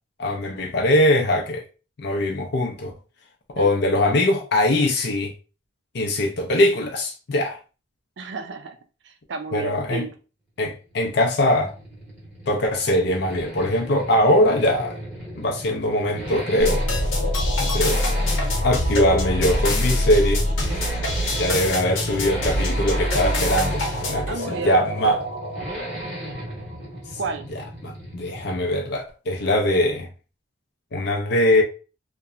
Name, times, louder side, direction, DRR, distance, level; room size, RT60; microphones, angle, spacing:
voice 1, 0.2-1.6 2.0-2.9 3.6-5.3 5.9-7.6 9.5-10.1 10.6-11.7 12.5-14.9 15.4-16.8 17.6-18.0 18.6-20.5 21.3-25.2 27.8-30.1 30.9-31.6, left 1 dB, 55° left, 0.5 m, -21 dB
voice 2, 8.2-8.8 9.0-10.1 24.3-24.9 27.2-27.5, right 4 dB, 60° right, 0.4 m, -32 dB
Accelerating revving vroom, 10.7-28.8 29.1-29.2, equal, 5° right, 0.9 m, -36 dB
sound 1, 16.6-26.7, left 1 dB, 75° left, 0.9 m, -25 dB
2.9 x 2.1 x 2.4 m
head